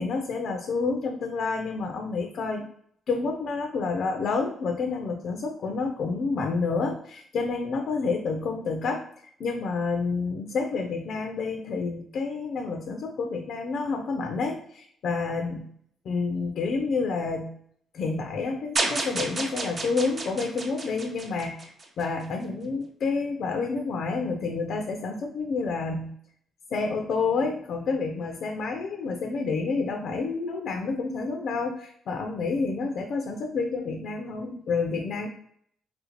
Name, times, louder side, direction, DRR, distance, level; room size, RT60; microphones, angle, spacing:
voice 1, 0.0-2.7 3.1-9.0 9.4-15.7 16.0-17.5 17.9-26.1 26.7-35.3, left 4 dB, 65° left, 4 dB, 0.4 m, -29 dB
sound 1, 18.8-22.0, right 2 dB, 40° right, 0.6 m, -31 dB
3.4 x 2.5 x 2.9 m, 0.65 s
cardioid pair, 90°, 0 cm